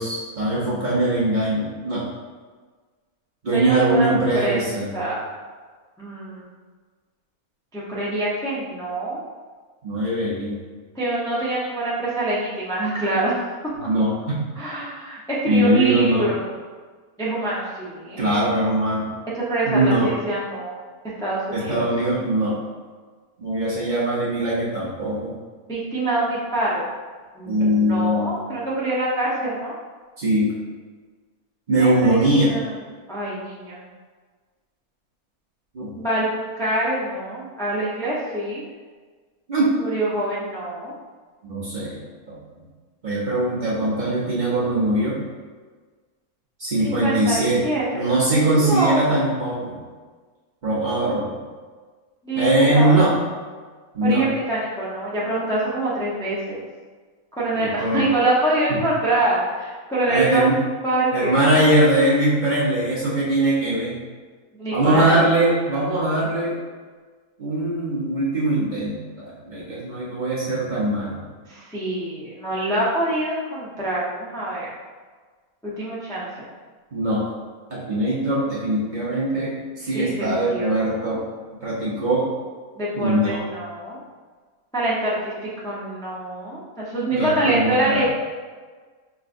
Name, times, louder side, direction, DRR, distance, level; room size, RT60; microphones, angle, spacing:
voice 1, 0.0-2.1 3.4-4.9 9.8-10.6 13.8-14.4 15.5-16.3 18.2-19.1 19.6-20.1 21.5-22.6 23.4-25.3 27.5-28.3 30.2-30.6 31.7-32.6 35.7-35.9 39.5-39.7 41.5-42.4 43.0-45.2 46.6-47.6 47.9-49.8 50.6-51.4 52.3-53.1 53.9-54.3 57.5-58.1 58.7-58.8 60.1-60.6 61.1-64.0 64.7-66.6 67.4-71.3 76.9-77.2 77.7-81.3 81.6-82.3 82.9-83.4 87.1-88.0, right 1 dB, 40° right, -8 dB, 0.8 m, -21 dB
voice 2, 3.5-4.1 4.4-4.6 4.9-5.3 6.0-6.5 7.7-9.2 10.9-13.4 14.5-16.5 17.2-18.2 19.5-20.7 21.2-21.9 25.7-26.9 27.3-29.7 31.8-32.7 33.1-33.8 35.9-36.3 36.6-38.6 39.8-40.9 46.8-48.0 48.5-49.2 52.2-52.9 54.0-56.6 57.4-60.5 60.8-61.5 64.6-65.2 71.5-74.7 75.6-76.4 79.9-81.2 82.8-84.0 84.7-85.3 85.6-88.0, right 1 dB, 5° left, -8 dB, 0.4 m, -25 dB
6.0 x 2.4 x 2.5 m, 1.5 s
omnidirectional pair, 1.5 m